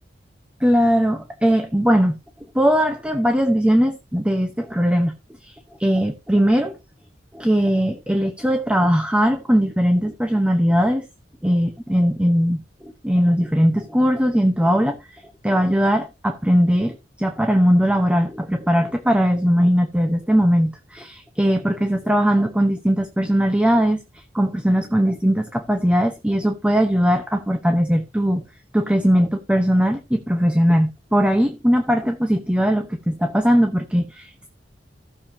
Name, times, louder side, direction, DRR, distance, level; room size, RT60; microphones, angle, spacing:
voice 1, 0.6-2.2 2.5-5.1 5.4-5.5 5.8-6.8 7.3-11.1 11.4-24.0 24.3-28.4 28.7-34.5, equal, 5° right, 0.9 m, -19 dB
16.0 x 7.0 x 2.8 m
head